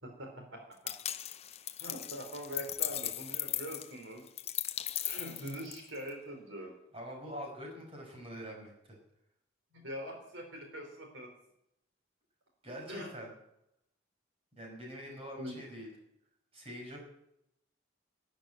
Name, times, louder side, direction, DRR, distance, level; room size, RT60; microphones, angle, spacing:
voice 1, 0.0-0.9 1.8-4.2 5.0-6.7 9.7-11.3 12.9-13.1 15.4-15.5, equal, 80° right, 2 dB, 3.9 m, -43 dB
sound 1, 0.9-6.1, left 12 dB, 35° left, 0.6 m, -38 dB
voice 2, 6.9-9.0 12.6-13.3 14.6-15.9 16.5-17.0, equal, 30° right, 0 dB, 5.4 m, -44 dB
13.0 x 9.3 x 9.1 m, 0.79 s
head